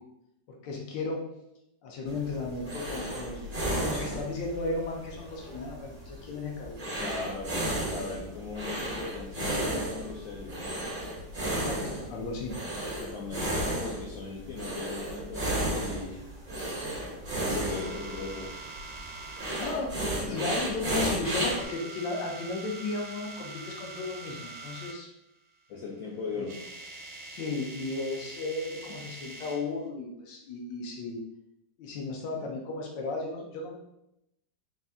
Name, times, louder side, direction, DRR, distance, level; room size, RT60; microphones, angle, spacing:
voice 1, 0.6-1.2 1.8-6.9 11.5-12.6 19.6-25.1 26.4-26.5 27.3-31.2 31.8-33.8, left 3 dB, 90° left, -1 dB, 1.4 m, -35 dB
sound 1, 2.1-21.6, right 1 dB, 35° right, 1.1 m, -34 dB
voice 2, 7.0-7.6 7.9-10.8 13.0-16.6 17.4-18.5 20.3-20.4 25.7-26.6, left 4 dB, 65° left, -3 dB, 0.9 m, -39 dB
sound 2, 17.6-19.7 20.5-20.8 21.1-25.0 26.1-26.2 26.4-29.7, right 3 dB, 75° right, 1.2 m, -44 dB
4.1 x 2.5 x 3.4 m, 0.83 s
omnidirectional pair, 1.9 m